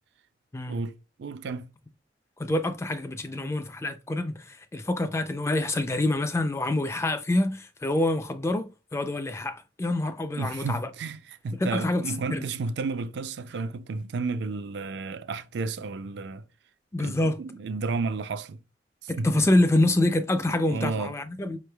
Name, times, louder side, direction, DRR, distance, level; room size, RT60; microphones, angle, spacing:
voice 1, 0.7-1.7 10.3-16.4 17.0-18.6 19.0-19.5 20.5-21.2, right 4 dB, 65° right, 0.4 m, -32 dB
voice 2, 2.4-10.9 11.6-12.5 16.9-17.4 19.1-21.6, left 1 dB, 15° left, 0.3 m, -26 dB
5.2 x 3.2 x 2.2 m
head